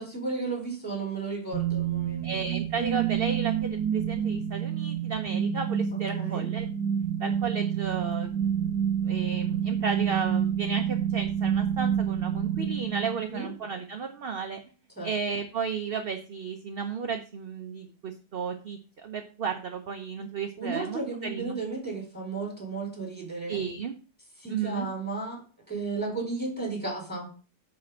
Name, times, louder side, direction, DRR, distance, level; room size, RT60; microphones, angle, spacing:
voice 1, 0.0-2.5 5.9-6.5 13.2-13.5 15.0-15.1 20.6-23.6 24.4-27.3, right 3 dB, 5° left, 0 dB, 4.2 m, -34 dB
sound 1, 1.5-13.5, right 9 dB, 80° right, 1.2 m, -28 dB
voice 2, 2.2-6.7 7.2-8.8 9.0-14.6 15.0-21.6 23.5-23.9 24.5-24.9, right 6 dB, 45° right, 5 dB, 0.9 m, -33 dB
9.9 x 4.4 x 6.3 m, 0.37 s
omnidirectional pair, 1.8 m